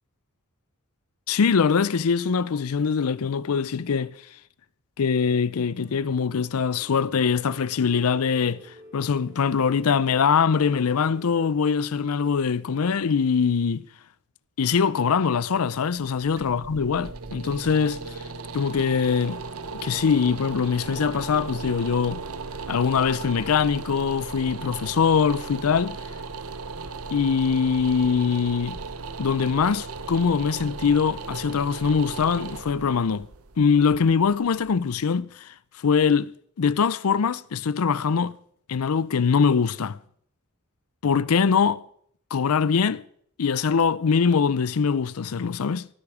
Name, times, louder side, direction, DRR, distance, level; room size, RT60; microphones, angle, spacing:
voice 1, 1.3-4.2 5.0-13.8 14.6-18.2 18.5-19.4 19.7-22.2 22.7-26.0 27.1-28.8 29.2-33.3 33.6-36.3 36.6-38.3 38.7-40.0 41.0-41.8 42.3-43.0 43.4-45.9, left 6 dB, 80° left, 0.5 m, -23 dB
sound 1, 5.7-11.5, equal, 15° right, 4.5 m, -50 dB
sound 2, 16.0-34.9, right 4 dB, 90° right, 1.1 m, -37 dB
19.0 x 12.0 x 4.9 m
head